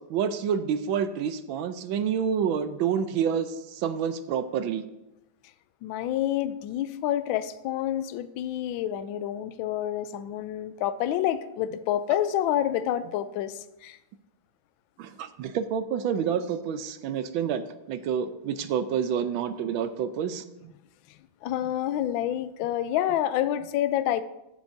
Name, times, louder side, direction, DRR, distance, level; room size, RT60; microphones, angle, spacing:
voice 1, 0.1-4.8 15.0-20.7, right 7 dB, 75° right, 1.3 m, -28 dB
voice 2, 5.8-14.0 21.4-24.2, left 11 dB, 75° left, 1.3 m, -28 dB
14.0 x 8.1 x 2.7 m
omnidirectional pair, 2.3 m